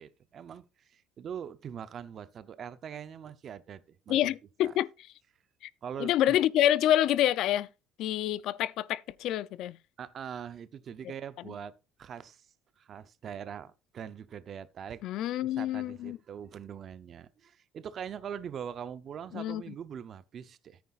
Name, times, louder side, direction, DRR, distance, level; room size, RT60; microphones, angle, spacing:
voice 1, 0.0-4.3 4.6-4.7 5.8-6.4 10.0-11.7 12.0-12.5 12.8-15.0 15.4-20.8, right 8 dB, 30° right, 0.6 m, -42 dB
voice 2, 4.1-4.9 6.0-7.7 8.0-9.8 15.0-16.2 19.3-19.6, left 12 dB, 50° left, 0.4 m, -27 dB
14.0 x 9.4 x 2.5 m
cardioid pair, 170°, 0 cm